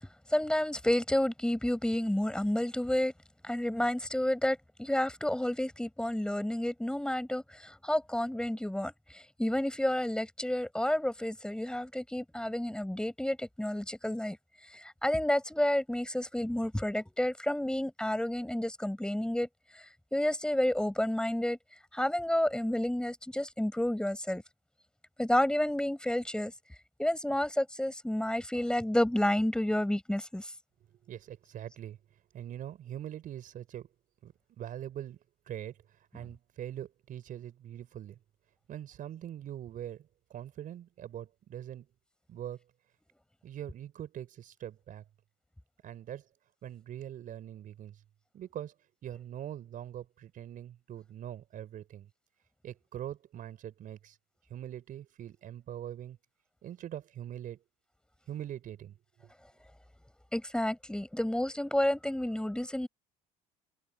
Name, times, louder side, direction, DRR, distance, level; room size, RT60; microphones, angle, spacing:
voice 1, 0.3-3.1 3.4-14.4 14.7-19.5 19.7-21.6 21.9-24.4 25.2-26.5 27.0-30.5 60.3-62.9, left 1 dB, 5° left, 6.7 m, -30 dB
voice 2, 31.0-32.0 32.3-33.9 34.2-35.2 35.5-35.8 36.1-38.2 38.7-41.9 42.3-42.6 43.4-45.0 45.8-46.3 46.6-48.0 48.3-48.7 49.0-52.1 52.6-54.2 54.5-56.2 56.6-57.6 58.3-58.9, right 11 dB, 55° right, 4.8 m, -42 dB
supercardioid pair, 80°, 16 cm